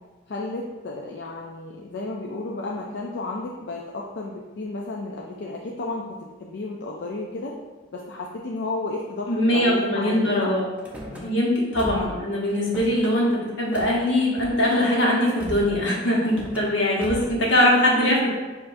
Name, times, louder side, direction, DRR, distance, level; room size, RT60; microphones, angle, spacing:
voice 1, 0.3-7.5 7.9-10.5 11.1-11.4 16.2-16.3, left 2 dB, 70° left, -2 dB, 0.4 m, -33 dB
voice 2, 9.3-10.6 11.2-13.3 13.6-18.3, left 1 dB, 90° left, -4 dB, 1.2 m, -21 dB
Car / Slam, 10.8-11.2 11.7-12.2 12.5-13.1 13.7-13.9 14.3-14.9 15.4-15.8 16.2-16.7 17.0-17.4, equal, 10° right, 0.6 m, -37 dB
6.7 x 2.6 x 2.6 m, 1.3 s
head